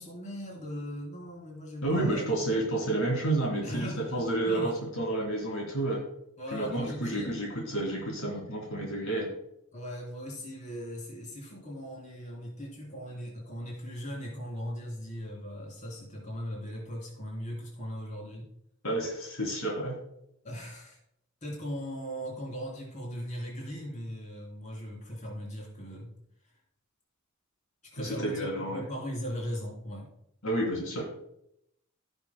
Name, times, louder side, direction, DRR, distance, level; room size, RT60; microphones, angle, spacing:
voice 1, 0.0-2.3 3.6-4.8 6.4-7.3 9.7-18.5 20.4-21.0 21.4-26.1 27.8-30.1, equal, 35° left, -3 dB, 3.3 m, -39 dB
voice 2, 1.8-6.0 6.5-9.3 18.8-20.0 28.0-28.8 30.4-31.0, right 1 dB, 80° left, -1 dB, 3.0 m, -30 dB
16.5 x 6.7 x 2.2 m, 0.77 s
head